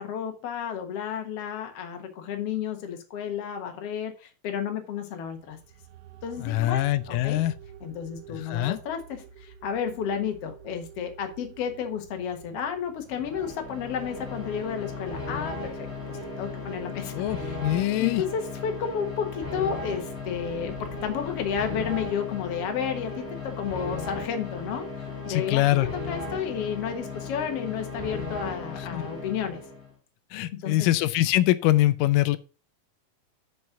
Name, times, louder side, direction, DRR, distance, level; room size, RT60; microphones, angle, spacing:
voice 1, 0.0-5.6 6.2-7.4 7.8-17.6 18.0-29.6 30.5-30.9, left 7 dB, 55° left, 2.0 m, -32 dB
sound 1, 5.2-21.8, right 9 dB, 80° right, 1.3 m, -49 dB
voice 2, 6.4-7.5 8.3-8.8 17.1-18.2 25.3-25.9 28.8-29.0 30.3-32.4, left 15 dB, 90° left, 2.3 m, -24 dB
sound 2, 13.1-29.9, left 3 dB, 20° left, 2.3 m, -36 dB
6.3 x 5.9 x 5.8 m
omnidirectional pair, 3.8 m